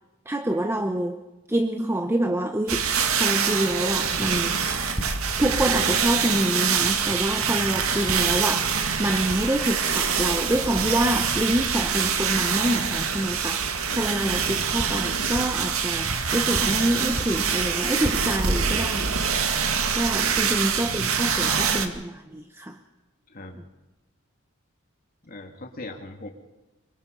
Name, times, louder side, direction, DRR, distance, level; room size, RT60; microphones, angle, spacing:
voice 1, 0.2-1.2 1.5-4.9 5.4-19.3 19.9-22.8, right 1 dB, 10° right, 7 dB, 1.0 m, -27 dB
sound 1, 2.7-21.9, right 6 dB, 85° right, 2.0 m, -25 dB
sound 2, 4.9-5.6 5.9-6.2 6.8-7.0 8.1-8.3 8.7-9.0 9.3-9.7 10.1-10.2 10.5-10.7 11.6-11.8 12.3-12.5 12.8-13.1 13.7-13.9 14.5-15.6 16.1-17.5 17.8-18.1, equal, 30° right, 7.0 m, -36 dB
voice 2, 23.3-23.6 25.2-26.3, left 2 dB, 45° left, 2 dB, 2.6 m, -40 dB
26.0 x 24.0 x 5.4 m, 1.1 s
head